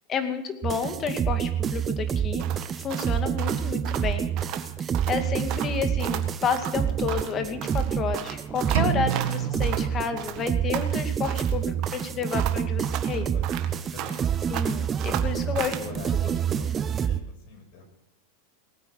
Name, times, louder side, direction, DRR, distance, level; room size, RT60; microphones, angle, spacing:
voice 1, 0.1-2.4 2.8-4.3 5.1-13.3 14.5-16.0, left 6 dB, 30° left, 7 dB, 2.2 m, -31 dB
sound 1, 0.6-17.2, right 8 dB, 25° right, 0.7 m, -28 dB
sound 2, 2.4-4.7 4.9-5.2 5.5-7.4 7.6-9.9 10.2-11.6 11.8-14.3 14.5-15.9, right 12 dB, 45° right, 1.7 m, -36 dB
sound 3, 8.7-10.7, right 11 dB, 75° right, 1.6 m, -29 dB
voice 2, 13.3-14.5 15.6-17.8, left 4 dB, 60° left, 4 dB, 6.2 m, -46 dB
19.5 x 9.0 x 8.0 m, 0.88 s
supercardioid pair, 130°, 0 cm